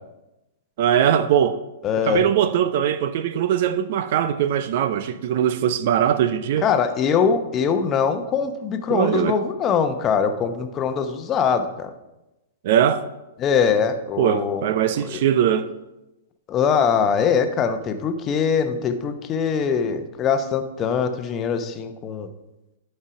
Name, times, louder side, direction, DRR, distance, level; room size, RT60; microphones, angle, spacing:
voice 1, 0.8-1.6 2.0-6.7 8.9-9.4 12.6-13.1 14.2-15.7, right 9 dB, 50° right, 0.5 m, -21 dB
voice 2, 1.8-2.3 6.6-11.9 13.4-14.7 15.1-15.2 16.5-22.3, left 6 dB, 25° left, 0.9 m, -22 dB
11.0 x 5.5 x 5.0 m
figure-of-eight pair, 105°, 0 cm